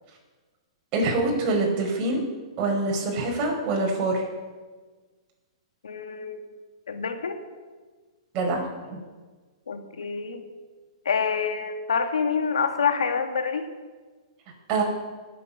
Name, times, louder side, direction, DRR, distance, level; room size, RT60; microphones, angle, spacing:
voice 1, 0.9-2.2 2.6-4.2 8.3-9.0 14.7-14.8, right 2 dB, 35° right, -1 dB, 5.1 m, -25 dB
voice 2, 5.8-6.5 6.9-7.4 9.7-10.4 11.0-13.7, left 6 dB, 80° left, 6 dB, 1.7 m, -27 dB
19.0 x 8.5 x 5.8 m, 1.4 s
hypercardioid pair, 120°, 3 cm